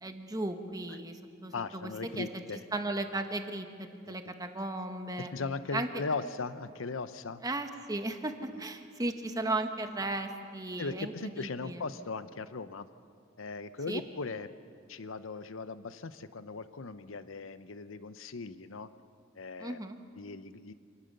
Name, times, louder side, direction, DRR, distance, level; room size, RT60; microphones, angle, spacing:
voice 1, 0.0-2.3 2.7-5.3 5.7-5.9 7.4-11.8 13.9-14.0 19.6-20.0, right 2 dB, 20° right, 6 dB, 1.3 m, -36 dB
voice 2, 1.5-2.6 4.1-4.2 5.2-7.4 10.8-12.9 13.4-14.5 14.9-18.9 19.4-19.8 20.2-20.7, left 4 dB, 75° left, 12 dB, 0.8 m, -38 dB
26.5 x 18.0 x 6.7 m, 2.2 s
head